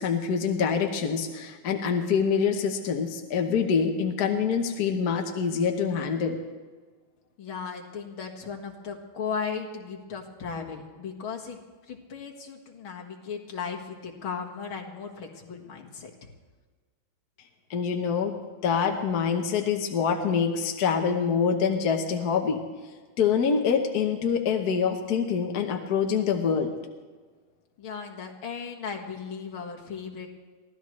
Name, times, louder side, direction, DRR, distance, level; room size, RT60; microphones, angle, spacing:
voice 1, 0.0-6.4 17.7-18.4 18.6-22.6 23.2-26.7, left 6 dB, 55° left, 4 dB, 1.5 m, -25 dB
voice 2, 7.4-11.6 11.9-16.1 27.8-30.3, left 6 dB, 70° left, 1 dB, 2.5 m, -36 dB
24.0 x 16.0 x 3.2 m, 1.4 s
omnidirectional pair, 2.3 m